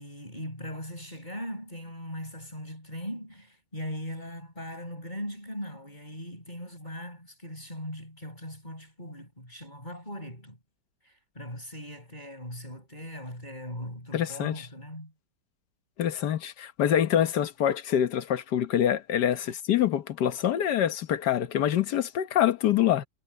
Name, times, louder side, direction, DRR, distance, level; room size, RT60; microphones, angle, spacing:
voice 1, 0.0-10.6 11.0-15.1, equal, 20° left, 7.5 m, -39 dB
voice 2, 14.1-14.5 16.0-23.1, left 10 dB, 60° left, 1.5 m, -25 dB
omnidirectional pair, 2.2 m